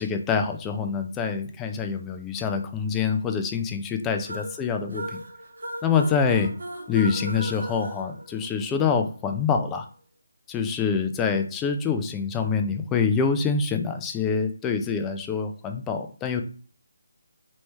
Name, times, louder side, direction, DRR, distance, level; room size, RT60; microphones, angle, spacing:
voice 1, 0.0-5.2 5.8-6.5 6.9-9.9 10.5-16.4, left 6 dB, 10° left, 5 dB, 0.3 m, -25 dB
sound 1, 4.2-9.0, right 1 dB, 70° right, 0.9 m, -37 dB
3.2 x 3.1 x 3.2 m, 0.41 s
figure-of-eight pair, 155°, 0 cm